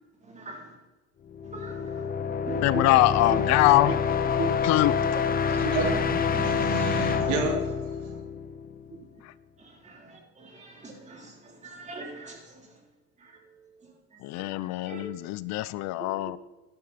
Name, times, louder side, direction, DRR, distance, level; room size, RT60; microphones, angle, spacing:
voice 1, 0.3-0.7 1.5-1.9 2.5-2.9 3.3-3.4 3.9-4.0 4.4-4.5 5.5-5.7 8.9-9.0 9.6-12.6 13.2-13.3 14.8-15.0 16.0-16.1, right 1 dB, 25° right, 1 dB, 3.2 m, -37 dB
sound 1, 1.3-9.0, left 6 dB, 30° left, 0.9 m, -27 dB
voice 2, 2.6-3.9 4.6-4.9 14.2-16.4, left 16 dB, 60° left, 18 dB, 0.5 m, -23 dB
voice 3, 5.5-7.7 7.9-8.0, right 3 dB, 75° right, 1 dB, 3.2 m, -30 dB
13.0 x 11.0 x 4.1 m, 1.1 s
cardioid pair, 125°, 31 cm